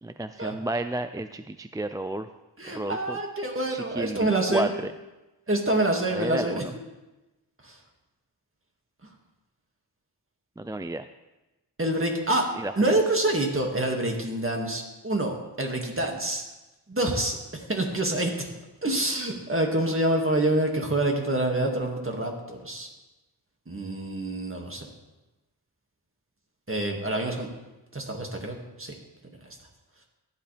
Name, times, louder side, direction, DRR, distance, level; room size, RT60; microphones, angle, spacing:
voice 1, 0.0-2.3 2.7-3.2 3.7-4.9 6.1-6.7 10.6-11.1 12.6-13.0, right 1 dB, 10° right, 10 dB, 0.3 m, -32 dB
voice 2, 2.6-4.7 5.5-6.6 7.6-7.8 11.8-12.5 12.8-16.4 16.9-18.5 18.8-22.9 23.7-24.9 26.7-27.5 27.9-28.9, right 1 dB, 30° right, 1 dB, 2.1 m, -27 dB
14.5 x 10.0 x 3.4 m, 1.1 s
wide cardioid pair, 60°, 42 cm